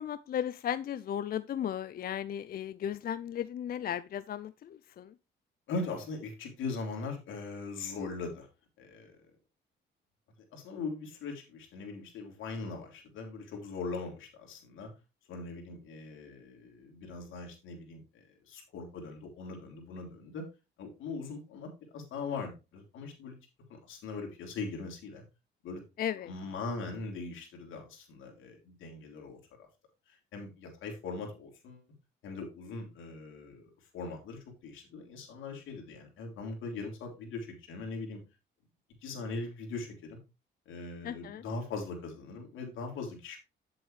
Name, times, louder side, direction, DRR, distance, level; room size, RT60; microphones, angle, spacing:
voice 1, 0.0-5.1 26.0-26.3 41.0-41.4, left 10 dB, 50° left, 0.4 m, -35 dB
voice 2, 5.7-8.5 8.8-9.1 10.5-14.9 15.3-20.4 20.8-23.3 23.7-25.2 25.6-25.8 26.2-29.7 30.1-31.8 32.2-38.2 39.0-40.2 40.6-43.4, left 3 dB, 80° left, 3.4 m, -40 dB
9.1 x 7.7 x 3.2 m
cardioid pair, 90°, 20 cm